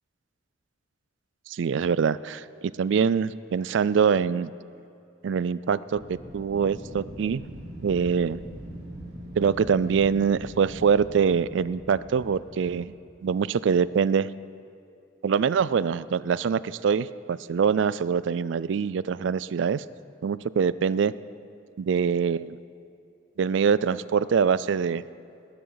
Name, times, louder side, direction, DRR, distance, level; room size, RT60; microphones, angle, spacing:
voice 1, 1.5-2.4 2.8-4.5 5.2-7.4 7.8-8.4 9.4-12.9 13.2-14.3 15.2-19.8 20.2-21.1 21.8-22.6 23.4-25.0, right 6 dB, 75° right, 18 dB, 0.3 m, -24 dB
Wind, 5.9-12.9, right 1 dB, 60° right, 2.7 m, -42 dB
18.0 x 13.0 x 4.0 m, 2.7 s
head